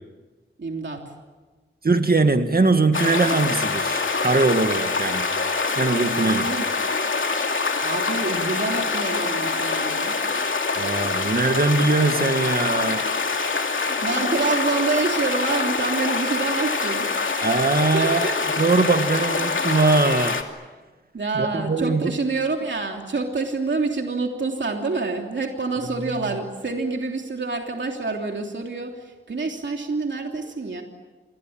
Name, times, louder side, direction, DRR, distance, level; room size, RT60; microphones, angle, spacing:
voice 1, 0.6-1.0 6.2-6.7 7.8-10.2 13.7-17.1 17.9-18.4 21.1-30.8, right 3 dB, 65° right, 2 dB, 3.2 m, -27 dB
voice 2, 1.8-5.3 5.8-6.5 10.8-13.0 17.4-18.3 18.6-20.4 21.3-22.1, right 3 dB, 50° right, 7 dB, 1.9 m, -21 dB
sound 1, 2.9-20.4, left 4 dB, 70° left, 2.8 m, -25 dB
28.0 x 22.5 x 8.9 m, 1.3 s
wide cardioid pair, 80°, 21 cm